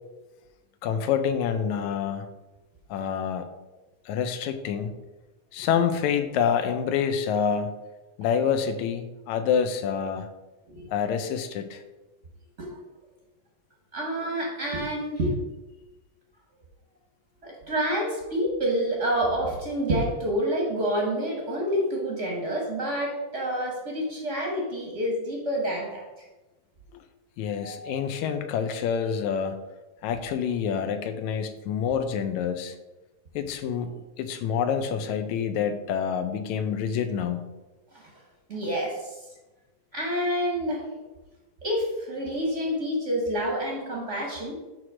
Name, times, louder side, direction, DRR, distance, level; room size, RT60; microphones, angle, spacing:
voice 1, 0.8-2.3 2.9-3.5 4.1-5.0 5.5-7.8 8.2-10.3 10.9-11.8 26.9-27.0 27.4-29.6 30.0-32.8 33.4-37.5, left 7 dB, 85° left, 9 dB, 2.0 m, -27 dB
voice 2, 13.9-15.3 17.4-26.1 27.6-28.0 37.9-38.1 38.5-39.2 39.9-40.9 41.6-44.5, equal, 45° right, -2 dB, 0.9 m, -28 dB
8.0 x 3.0 x 6.1 m, 1.1 s
omnidirectional pair, 3.3 m